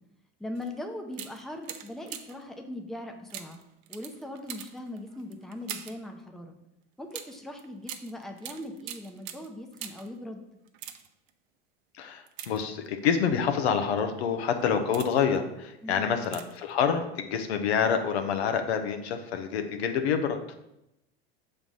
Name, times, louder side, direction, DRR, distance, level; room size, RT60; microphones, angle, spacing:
voice 1, 0.4-3.6 3.9-6.6 7.0-10.4 15.8-16.1, left 1 dB, ahead, 3 dB, 0.7 m, -40 dB
sound 1, 0.5-0.7 1.1-2.5 3.3-6.1 7.1-10.2 10.6-11.3 12.3-13.1 13.8-14.0 14.6-15.4 16.2-16.7 17.0-17.1, right 10 dB, 60° right, 0.7 m, -43 dB
voice 2, 12.0-20.5, left 7 dB, 80° left, 7 dB, 0.8 m, -27 dB
6.0 x 3.4 x 5.3 m, 0.85 s
hypercardioid pair, 105°, 32 cm